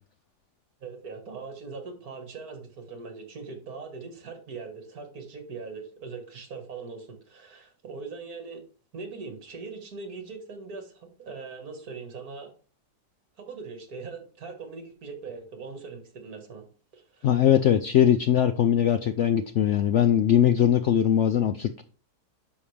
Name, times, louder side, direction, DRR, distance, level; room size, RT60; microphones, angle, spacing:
voice 1, 0.8-8.6 8.9-12.5 13.4-16.7 16.9-17.4, right 4 dB, 60° right, 5 dB, 2.1 m, -41 dB
voice 2, 17.2-21.8, left 9 dB, 90° left, 10 dB, 0.6 m, -21 dB
11.0 x 5.5 x 3.3 m, 0.40 s
omnidirectional pair, 1.8 m